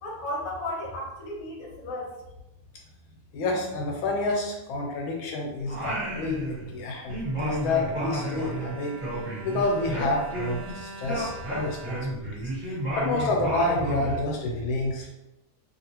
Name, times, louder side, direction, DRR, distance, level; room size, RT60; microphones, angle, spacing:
voice 1, 0.0-2.1, left 1 dB, 55° left, -3 dB, 1.0 m, -34 dB
voice 2, 3.3-9.0 9.4-15.1, left 2 dB, 80° left, 0 dB, 1.3 m, -29 dB
Singing, 5.7-6.8 7.1-10.7 11.0-14.2, right 1 dB, 25° right, 1.2 m, -32 dB
Bowed string instrument, 6.9-13.1 13.8-13.9 14.2-14.3, right 3 dB, 80° right, 1.3 m, -44 dB
3.0 x 2.7 x 2.8 m, 0.93 s
omnidirectional pair, 2.3 m